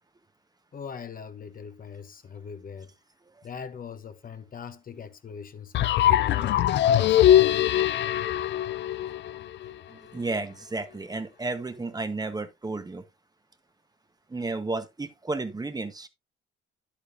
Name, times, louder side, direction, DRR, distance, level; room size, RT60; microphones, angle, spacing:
voice 1, 0.7-2.9 3.4-7.2, left 6 dB, 45° left, 1.0 m, -41 dB
sound 1, 5.7-9.7, left 12 dB, 65° left, 0.5 m, -22 dB
voice 2, 9.0-9.3 9.9-13.0 14.3-16.1, right 3 dB, 20° right, 1.1 m, -33 dB
9.8 x 8.5 x 2.6 m
cardioid pair, 90°, 20 cm